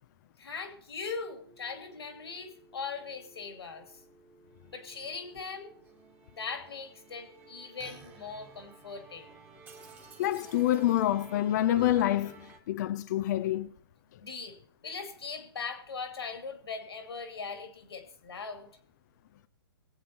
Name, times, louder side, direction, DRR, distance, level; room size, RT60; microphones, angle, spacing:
voice 1, 0.4-3.9 4.7-5.8 6.4-9.3 14.2-14.6 14.8-18.7, left 5 dB, 70° left, 2.6 m, -40 dB
Musical instrument, 1.4-12.6, right 4 dB, 15° right, 1.8 m, -53 dB
voice 2, 10.2-13.7, left 13 dB, 45° left, 0.7 m, -27 dB
22.0 x 8.5 x 3.0 m
figure-of-eight pair, 125°, 14 cm